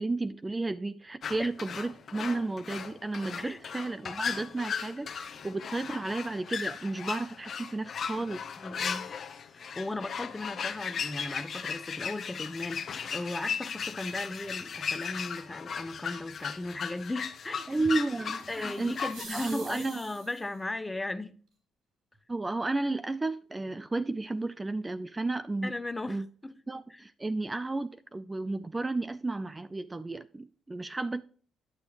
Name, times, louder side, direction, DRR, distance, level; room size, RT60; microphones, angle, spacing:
voice 1, 0.0-8.4 17.7-20.0 22.3-25.7 26.1-26.3 26.7-31.2, right 2 dB, 20° right, 0.4 m, -33 dB
sound 1, 1.2-19.3, left 6 dB, 55° left, 0.8 m, -37 dB
voice 2, 8.6-9.1 9.5-17.7 18.5-21.4 25.6-26.5 26.9-27.0, left 2 dB, 15° left, 0.7 m, -37 dB
sound 2, 18.4-20.6, right 4 dB, 75° right, 3.2 m, -46 dB
9.7 x 6.9 x 3.0 m
cardioid pair, 90°, 0 cm